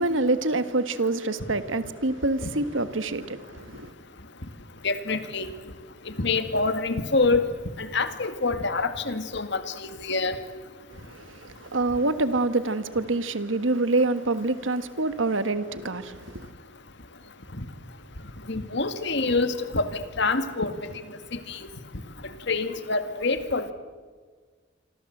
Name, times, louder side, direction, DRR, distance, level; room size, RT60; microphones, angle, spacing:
voice 1, 0.0-3.9 10.9-16.5, right 2 dB, 75° right, 1.5 m, -26 dB
voice 2, 4.8-5.5 6.2-7.5 7.8-9.6 10.0-10.4 18.5-19.9 20.2-20.7 21.3-21.6 22.5-23.7, left 3 dB, 60° left, 2.1 m, -26 dB
26.5 x 26.0 x 8.0 m
head